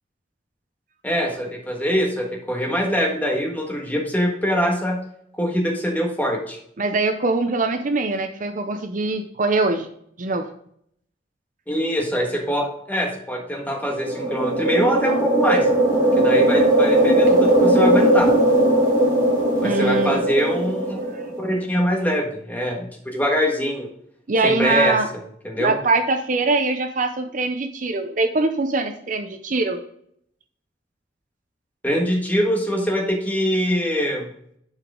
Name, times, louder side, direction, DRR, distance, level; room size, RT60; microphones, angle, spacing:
voice 1, 1.0-5.0 5.3-6.6 11.7-15.7 16.2-18.3 19.6-21.0 21.4-23.9 24.4-25.0 25.4-25.8 31.8-34.3, equal, 10° left, 1 dB, 1.5 m, -23 dB
voice 2, 6.8-9.9 10.2-10.5 19.6-20.2 21.1-21.2 24.3-25.1 25.6-29.8, right 3 dB, 45° right, 7 dB, 0.6 m, -22 dB
sound 1, 13.7-21.4, right 1 dB, 15° right, 2.8 m, -18 dB
11.0 x 4.9 x 3.8 m, 0.68 s
head